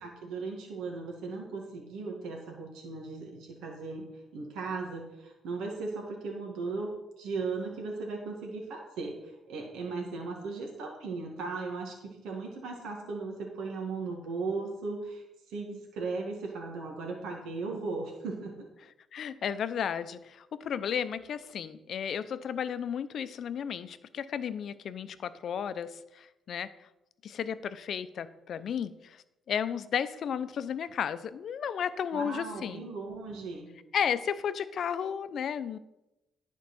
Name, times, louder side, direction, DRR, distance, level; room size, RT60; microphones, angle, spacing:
voice 1, 0.0-6.9 7.2-18.5 32.1-33.7, right 3 dB, 85° right, 0 dB, 1.9 m, -37 dB
voice 2, 19.1-26.7 27.2-32.9 33.9-35.8, left 8 dB, 60° left, 13 dB, 0.6 m, -33 dB
10.5 x 4.5 x 6.9 m, 0.92 s
cardioid pair, 90°, 0 cm